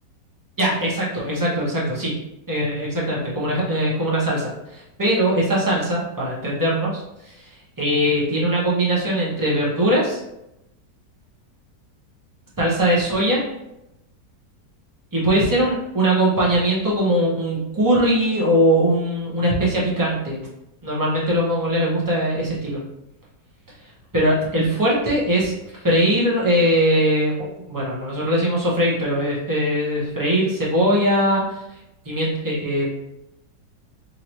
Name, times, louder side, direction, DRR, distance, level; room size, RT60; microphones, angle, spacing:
voice 1, 0.6-2.1 2.5-7.4 7.8-10.2 12.6-13.4 15.1-20.4 20.8-22.8 24.1-25.5 25.8-31.6 32.0-32.9, equal, 15° right, -6 dB, 0.8 m, -21 dB
3.9 x 2.8 x 3.0 m, 0.88 s
omnidirectional pair, 1.8 m